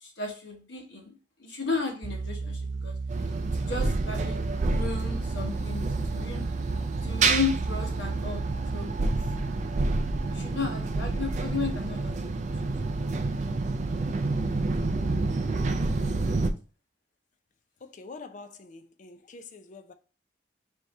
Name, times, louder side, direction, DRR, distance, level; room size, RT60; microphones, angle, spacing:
voice 1, 0.0-3.0 3.6-4.4 4.7-6.5 7.0-8.4 8.7-9.1 10.3-12.7, left 4 dB, 75° left, 1.1 m, -34 dB
sound 1, 2.0-8.8, right 4 dB, 80° right, 0.8 m, -34 dB
sound 2, 3.1-16.5, right 3 dB, 40° right, 0.4 m, -29 dB
voice 2, 17.8-19.9, left 3 dB, 40° left, 0.4 m, -45 dB
3.5 x 2.7 x 4.1 m
head